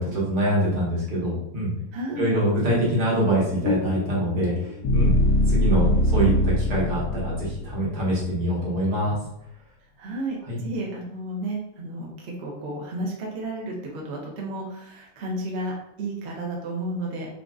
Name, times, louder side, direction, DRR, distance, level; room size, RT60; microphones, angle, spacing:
voice 1, 0.0-1.7 2.2-4.5 4.9-5.1 5.5-9.2 10.5-10.6, right 1 dB, 75° right, -5 dB, 1.9 m, -24 dB
voice 2, 1.9-2.3 10.0-17.4, right 1 dB, 50° right, -2 dB, 0.9 m, -32 dB
sound 1, 3.7-7.7, left 1 dB, 70° left, 1.1 m, -22 dB
3.9 x 3.5 x 2.4 m, 0.79 s
omnidirectional pair, 1.7 m